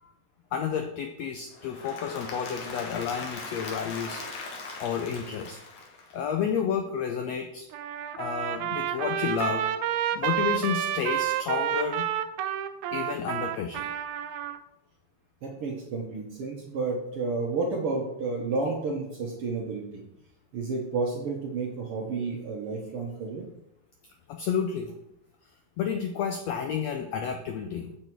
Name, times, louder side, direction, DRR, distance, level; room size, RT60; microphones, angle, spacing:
voice 1, 0.5-5.6 6.1-7.7 8.2-9.6 10.1-12.1 12.9-13.9 24.3-24.9 25.8-28.0, left 7 dB, 90° left, 5 dB, 1.5 m, -31 dB
Applause / Crowd, 1.5-6.5, left 3 dB, 65° left, 2.5 m, -40 dB
Trumpet, 7.7-14.6, right 11 dB, 80° right, 1.8 m, -29 dB
voice 2, 15.4-20.0 20.5-23.5, right 3 dB, 60° right, 0 dB, 1.5 m, -31 dB
7.9 x 6.8 x 4.5 m, 0.83 s
omnidirectional pair, 3.8 m